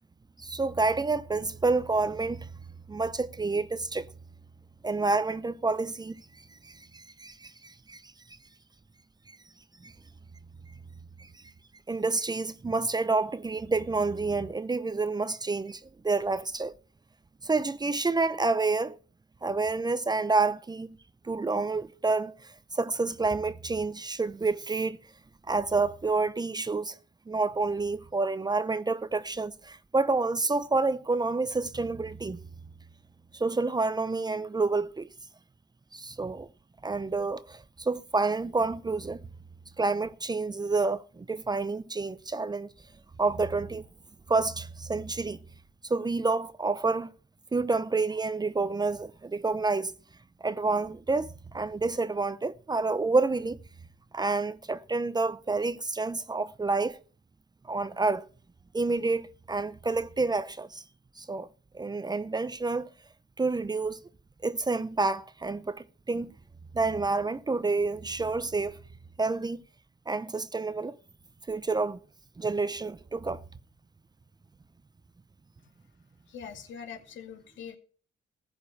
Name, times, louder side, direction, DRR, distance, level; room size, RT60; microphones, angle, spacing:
voice 1, 0.4-2.5 2.9-4.1 4.8-6.2 6.6-8.0 9.8-9.9 11.2-11.3 11.9-16.7 17.4-19.0 19.4-21.0 21.2-22.3 22.7-25.0 25.5-27.0 27.3-32.4 33.3-35.1 35.9-36.5 36.8-39.2 39.8-42.7 43.2-43.8 44.3-45.4 45.8-47.1 47.5-49.9 50.4-53.6 54.1-57.0 57.6-58.2 58.7-60.8 61.2-61.5 61.7-62.9 63.4-64.0 64.4-66.3 66.7-68.8 69.2-69.6 70.1-71.0 71.5-72.0 72.4-73.4, right 3 dB, 20° right, 0.7 m, -28 dB
voice 2, 76.3-77.8, left 7 dB, 70° left, 2.5 m, -43 dB
15.0 x 5.4 x 8.6 m
cardioid pair, 90°, 20 cm